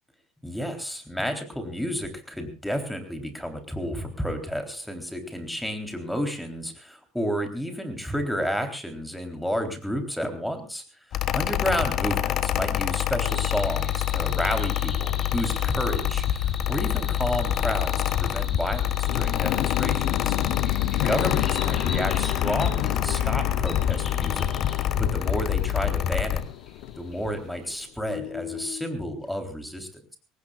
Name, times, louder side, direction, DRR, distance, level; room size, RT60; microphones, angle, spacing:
voice 1, 0.4-10.8 11.3-20.4 21.0-24.5 24.7-26.4 27.0-30.2, equal, 5° left, 6 dB, 3.7 m, -31 dB
Mechanical fan, 11.1-26.4, left 12 dB, 45° left, 1.1 m, -26 dB
sound 1, 13.3-27.7, left 3 dB, 25° left, 6.9 m, -42 dB
sound 2, 17.9-27.8 28.0-28.9, left 15 dB, 70° left, 1.0 m, -32 dB
24.0 x 19.0 x 2.5 m, 0.34 s
cardioid pair, 135°, 0 cm